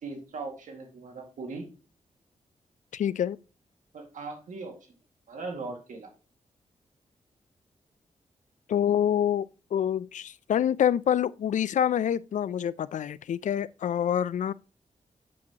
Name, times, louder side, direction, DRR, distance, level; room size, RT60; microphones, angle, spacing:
voice 1, 0.0-1.7 3.9-4.7 5.3-6.1, right 3 dB, 85° right, 2.0 m, -39 dB
voice 2, 2.9-3.4 8.7-9.5 9.7-14.5, left 9 dB, 75° left, 0.4 m, -26 dB
8.4 x 7.6 x 2.9 m
cardioid pair, 80°, 13 cm